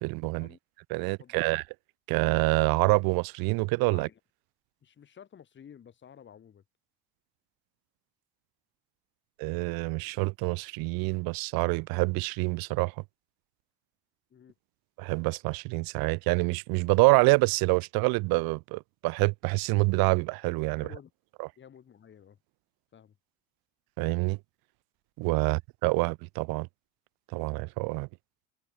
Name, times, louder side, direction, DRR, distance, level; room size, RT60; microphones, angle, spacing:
voice 1, 0.0-0.5 0.9-1.6 2.1-4.1 9.4-12.9 15.0-20.9 24.0-24.4 25.2-26.7 27.3-28.1, right 27 dB, 65° right, 0.5 m, -26 dB
voice 2, 1.0-1.5 3.9-4.2 4.8-6.6 14.3-14.5 20.7-21.1 21.6-22.4 22.9-23.2 25.4-25.6, left 8 dB, 30° left, 3.0 m, -52 dB
cardioid pair, 160°, 39 cm